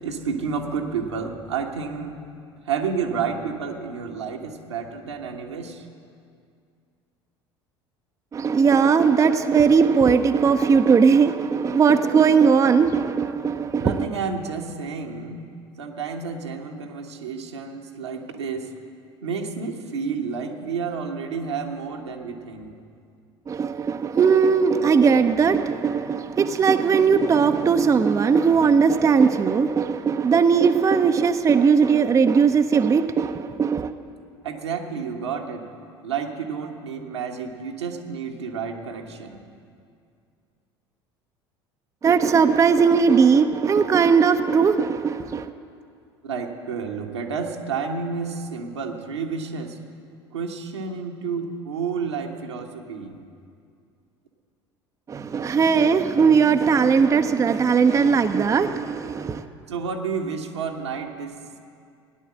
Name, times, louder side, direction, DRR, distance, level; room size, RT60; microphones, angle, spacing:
voice 1, 0.0-2.1 2.6-5.8 13.8-15.4 15.8-18.7 19.2-22.7 34.4-35.6 36.0-39.4 46.2-49.8 50.3-53.1 59.7-61.4, right 5 dB, 80° right, 1.3 m, -30 dB
voice 2, 8.3-14.1 23.5-33.9 42.0-45.5 55.1-59.4, right 6 dB, 25° right, 0.6 m, -19 dB
15.5 x 10.0 x 7.5 m
figure-of-eight pair, 70°, 14 cm